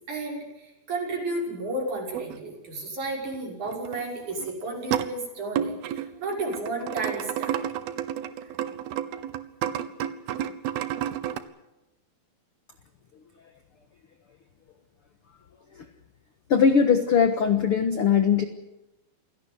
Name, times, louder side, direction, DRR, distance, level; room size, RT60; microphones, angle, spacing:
voice 1, 0.1-7.6, right 2 dB, 50° right, 0 dB, 7.4 m, -32 dB
sound 1, 2.1-2.4 3.3-3.4 3.7-4.0 4.4-5.1 5.6-11.4, right 10 dB, 85° right, 3.0 m, -31 dB
voice 2, 16.5-18.5, left 6 dB, 55° left, 7 dB, 1.6 m, -20 dB
27.5 x 17.5 x 8.1 m, 0.95 s
omnidirectional pair, 4.3 m